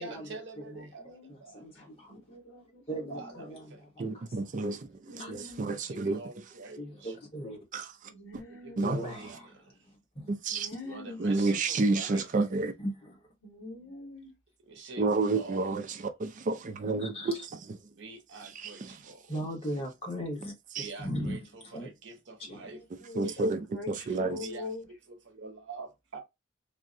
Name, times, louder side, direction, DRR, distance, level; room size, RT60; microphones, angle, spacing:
voice 1, 0.0-1.7 3.1-3.9 5.9-7.2 8.5-9.9 10.8-12.3 14.6-15.8 18.0-19.3 20.7-22.9 23.2-23.5 24.1-26.2, right 3 dB, 60° right, 0.8 m, -46 dB
voice 2, 1.0-1.3 2.1-2.8 5.1-5.7 8.0-8.9 10.5-11.2 13.4-14.3 23.0-24.8, left 3 dB, 65° left, 1.7 m, -43 dB
voice 3, 1.5-2.2 2.9-3.2 3.5-3.6 4.0-4.2 4.6-4.7 5.2-5.5 6.8-7.6 8.8-9.2 10.1-10.3 12.8-13.2 17.0-17.3 19.3-20.5 21.0-21.4 21.7-21.9 22.5-22.6, equal, 30° left, 1.2 m, -37 dB
voice 4, 4.0-6.2 7.7-8.1 8.8-9.0 10.3-10.7 11.2-12.7 15.0-15.8 16.2-17.8 20.7-20.9 23.2-24.5, right 3 dB, 40° right, 0.4 m, -30 dB
3.6 x 2.1 x 2.5 m
head